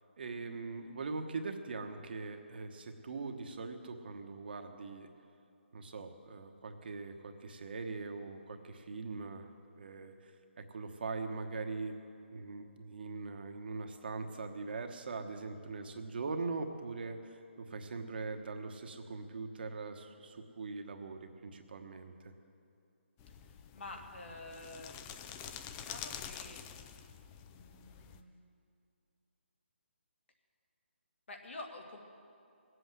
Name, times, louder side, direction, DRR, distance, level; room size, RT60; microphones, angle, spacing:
voice 1, 0.2-5.1 5.7-10.3 10.6-12.0 12.3-22.3, right 4 dB, 55° right, 5 dB, 1.2 m, -41 dB
sound 1, 23.2-28.2, left 8 dB, 10° left, 0.3 m, -47 dB
voice 2, 23.3-26.6 27.5-28.3 31.3-32.0, left 2 dB, 70° left, 2 dB, 2.3 m, -49 dB
18.5 x 8.0 x 8.0 m, 2.5 s
hypercardioid pair, 165°, 7 cm